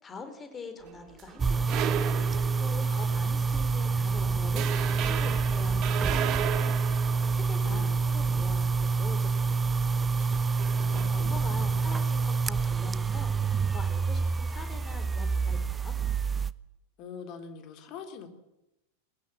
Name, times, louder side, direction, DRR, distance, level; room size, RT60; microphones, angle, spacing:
voice 1, 0.0-15.9, left 4 dB, 20° left, 7 dB, 4.4 m, -45 dB
sound 1, 0.8-3.1 3.5-3.7 4.1-4.2 4.5-8.0 10.1-11.1, right 10 dB, 35° right, 2.0 m, -35 dB
sound 2, 1.4-16.5, right 4 dB, 15° right, 0.7 m, -27 dB
voice 2, 2.8-3.3 3.7-4.0 7.6-8.0 10.8-11.8 17.0-18.3, left 6 dB, 40° left, 7 dB, 3.4 m, -44 dB
22.0 x 20.5 x 7.3 m, 0.97 s
figure-of-eight pair, 90°, 0 cm